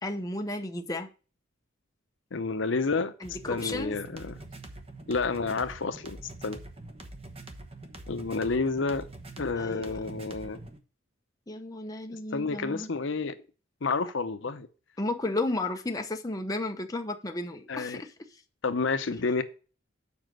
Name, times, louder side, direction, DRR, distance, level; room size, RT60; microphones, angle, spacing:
voice 1, 0.0-1.1 3.2-4.0 9.6-10.0 11.5-12.9 15.0-18.1, left 2 dB, 20° left, 0.8 m, -33 dB
voice 2, 2.3-3.1 3.5-4.4 5.1-6.2 6.4-6.6 8.1-9.1 9.4-10.6 12.3-13.4 13.8-14.7 17.7-18.0 18.6-19.4, left 4 dB, 65° left, 0.7 m, -29 dB
sound 1, 3.2-10.8, right 2 dB, 30° right, 1.1 m, -45 dB
7.2 x 5.0 x 6.1 m
head